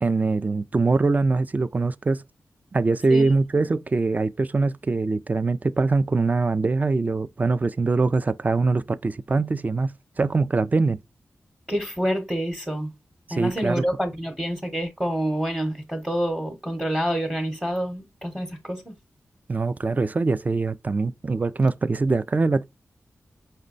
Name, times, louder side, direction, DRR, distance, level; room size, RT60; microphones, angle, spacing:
voice 1, 0.0-2.2 2.7-11.0 13.3-13.8 19.5-22.6, right 3 dB, 30° right, 0.4 m, -23 dB
voice 2, 11.7-12.9 13.3-18.9, equal, 10° right, 0.9 m, -27 dB
5.2 x 2.2 x 3.8 m
wide cardioid pair, 80°, 5 cm